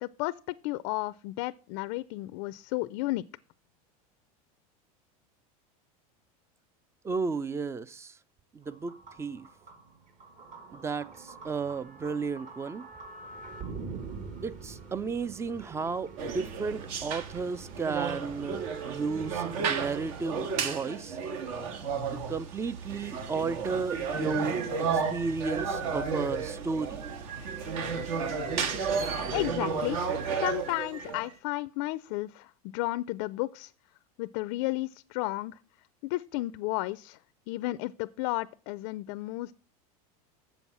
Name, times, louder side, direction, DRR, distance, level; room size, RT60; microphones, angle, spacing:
voice 1, 0.0-3.2 29.3-33.7 34.2-35.6 36.0-37.2 37.5-39.5, left 19 dB, 60° left, 0.4 m, -33 dB
voice 2, 7.0-8.1 8.5-9.5 10.7-12.9 14.4-21.2 22.1-27.0, right 4 dB, 15° right, 0.4 m, -33 dB
sound 1, 8.6-20.2, right 5 dB, 40° right, 1.9 m, -45 dB
sound 2, 16.2-31.3, right 5 dB, 65° right, 1.7 m, -33 dB
7.9 x 7.1 x 5.9 m
supercardioid pair, 125°, 19 cm